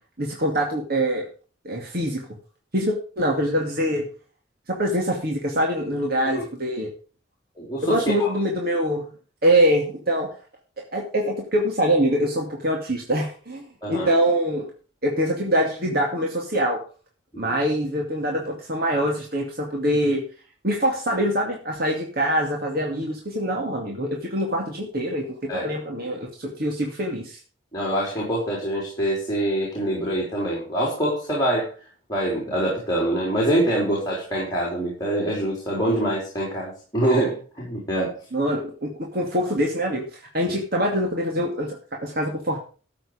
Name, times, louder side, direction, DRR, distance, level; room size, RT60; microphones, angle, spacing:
voice 1, 0.2-1.3 1.6-2.2 2.7-4.1 4.7-6.9 7.8-9.1 9.4-10.3 10.9-14.7 15.0-16.8 17.4-20.2 20.6-27.4 38.3-40.0 40.3-42.6, equal, 50° right, 0 dB, 2.4 m, -24 dB
voice 2, 7.6-8.3 13.8-14.1 17.3-17.5 25.5-25.7 27.7-31.7 32.1-38.1, right 1 dB, 20° left, -4 dB, 4.4 m, -25 dB
13.5 x 7.8 x 5.2 m, 0.38 s
head